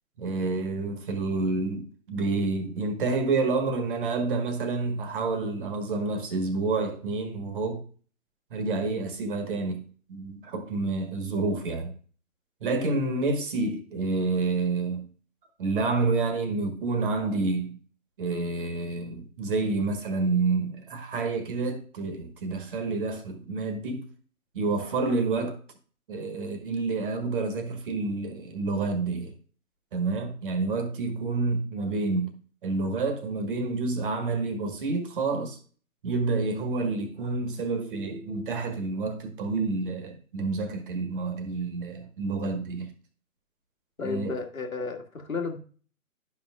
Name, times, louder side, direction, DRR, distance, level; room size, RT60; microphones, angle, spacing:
voice 1, 0.2-7.8 8.5-11.9 12.6-15.1 15.6-17.8 18.2-24.1 24.5-25.6 26.1-29.3 29.9-32.3 32.6-35.6 36.0-42.9 44.0-44.4, right 3 dB, 40° right, 1.4 m, -29 dB
voice 2, 44.0-45.6, left 4 dB, 80° left, 1.8 m, -32 dB
11.0 x 5.7 x 2.4 m
figure-of-eight pair, 140°, 41 cm